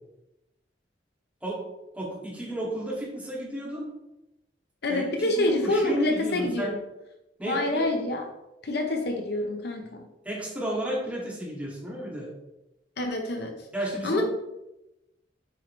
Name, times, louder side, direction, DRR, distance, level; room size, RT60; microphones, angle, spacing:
voice 1, 1.9-3.8 4.9-5.1 5.4-6.8 7.4-7.8 10.2-12.3 13.7-14.2, right 1 dB, 10° right, -6 dB, 2.4 m, -32 dB
voice 2, 4.8-6.8 7.5-8.3 8.6-10.0 13.0-13.6 14.0-14.2, left 2 dB, 60° left, 3 dB, 0.8 m, -27 dB
8.0 x 4.8 x 3.3 m, 0.94 s
head